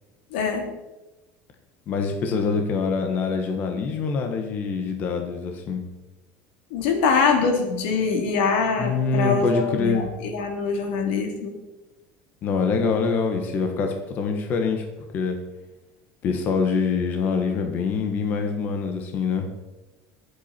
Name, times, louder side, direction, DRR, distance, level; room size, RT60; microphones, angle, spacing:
voice 1, 0.3-0.7 6.7-11.5, left 5 dB, 85° left, 3 dB, 3.2 m, -23 dB
voice 2, 1.9-5.8 8.8-10.1 12.4-14.8 15.1-15.4 16.2-19.5, left 5 dB, 35° left, 4 dB, 1.4 m, -25 dB
23.5 x 8.4 x 4.4 m, 1.1 s
cardioid pair, 180°, 5 cm